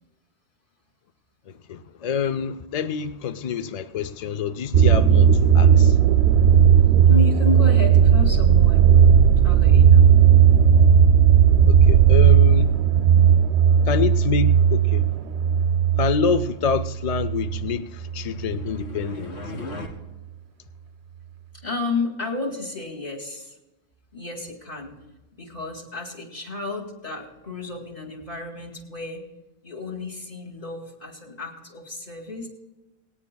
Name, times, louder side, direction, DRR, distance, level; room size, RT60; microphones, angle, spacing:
voice 1, 1.5-6.1 11.7-12.8 13.8-15.2 16.0-19.4, left 6 dB, 55° left, 0.4 m, -27 dB
sound 1, 4.7-17.8 18.1-18.7, right 8 dB, 75° right, 0.8 m, -16 dB
voice 2, 7.1-9.0 9.4-10.1 13.5-13.6 21.6-23.6 24.1-25.0 25.4-29.2 29.6-32.5, left 2 dB, 40° left, 2.4 m, -32 dB
sound 2, 17.9-19.9, left 2 dB, 85° left, 2.1 m, -38 dB
18.5 x 18.0 x 2.3 m
omnidirectional pair, 1.1 m